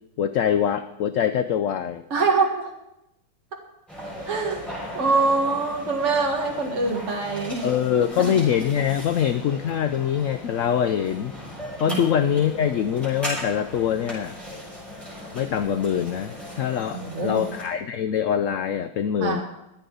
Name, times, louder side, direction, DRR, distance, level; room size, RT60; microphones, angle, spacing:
voice 1, 0.2-2.0 7.6-11.3 11.8-14.3 15.3-19.4, left 9 dB, 70° left, 10 dB, 0.8 m, -24 dB
voice 2, 2.1-2.7 4.3-4.7 4.9-7.7 8.3-8.4 11.9-12.0 16.9-17.5 19.2-19.4, right 3 dB, 45° right, 1 dB, 2.0 m, -24 dB
sound 1, 3.9-17.6, left 1 dB, ahead, 5.9 m, -37 dB
23.5 x 8.2 x 3.9 m, 0.87 s
omnidirectional pair, 1.8 m